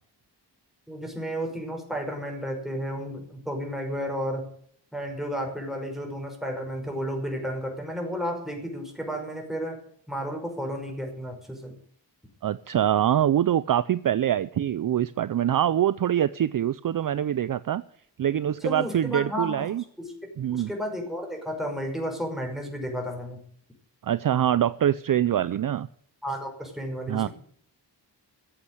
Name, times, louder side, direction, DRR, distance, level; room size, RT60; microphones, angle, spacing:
voice 1, 0.9-4.5 4.9-9.8 10.1-11.7 18.6-20.1 20.5-23.4 26.2-27.3, equal, ahead, 1 dB, 5.6 m, -32 dB
voice 2, 12.4-17.8 18.2-19.8 20.4-20.7 24.0-25.9 27.1-27.3, right 10 dB, 50° right, 16 dB, 0.5 m, -24 dB
14.5 x 8.7 x 9.7 m, 0.62 s
wide cardioid pair, 105°, 43 cm